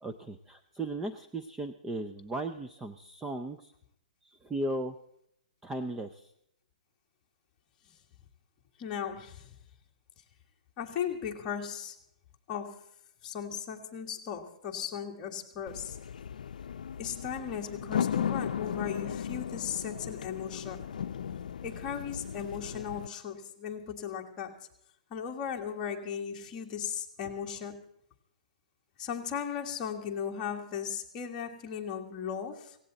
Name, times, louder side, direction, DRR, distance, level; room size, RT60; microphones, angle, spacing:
voice 1, 0.0-3.7 4.2-5.0 5.6-6.3, right 2 dB, 5° right, 10 dB, 0.5 m, -36 dB
voice 2, 8.8-9.5 10.8-12.0 12.5-12.8 13.2-16.0 17.0-20.9 21.6-24.6 25.1-27.8 29.0-32.8, left 8 dB, 20° left, 0 dB, 1.7 m, -37 dB
sound 1, 15.7-23.1, left 8 dB, 75° left, 0.6 m, -36 dB
17.5 x 16.5 x 4.0 m, 0.73 s
hypercardioid pair, 170°, 4 cm